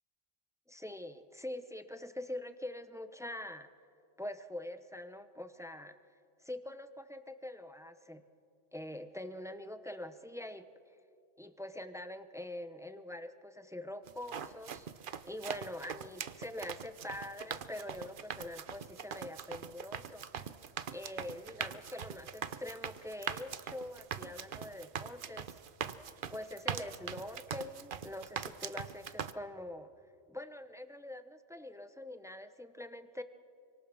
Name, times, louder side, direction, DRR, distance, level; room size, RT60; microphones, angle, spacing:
voice 1, 0.7-3.7 4.2-6.0 6.4-8.2 8.7-11.0 11.4-14.9 15.2-20.5 20.9-25.6 26.3-29.9 30.3-33.2, left 1 dB, 5° right, 10 dB, 0.7 m, -44 dB
sound 1, 14.1-29.3, right 7 dB, 55° right, 0.8 m, -42 dB
27.0 x 24.5 x 6.2 m, 2.4 s
omnidirectional pair, 1.1 m